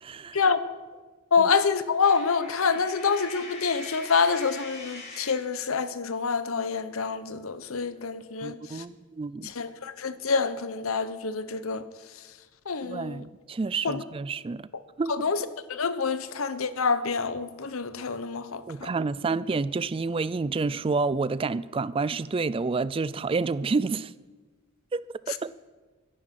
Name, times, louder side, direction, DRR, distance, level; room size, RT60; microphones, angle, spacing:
voice 1, 0.0-0.4 1.4-1.5 8.4-9.5 12.8-14.7 15.0-15.1 18.7-24.1 24.9-25.0 25.3-25.5, right 4 dB, 25° right, 0.3 m, -29 dB
voice 2, 1.3-8.8 9.4-11.8 12.7-13.2 13.8-14.0 15.1-15.4 15.7-18.9, left 5 dB, 75° left, 0.8 m, -27 dB
Coin (dropping), 2.0-5.5, left 2 dB, 30° left, 3.8 m, -42 dB
14.0 x 11.0 x 5.9 m
head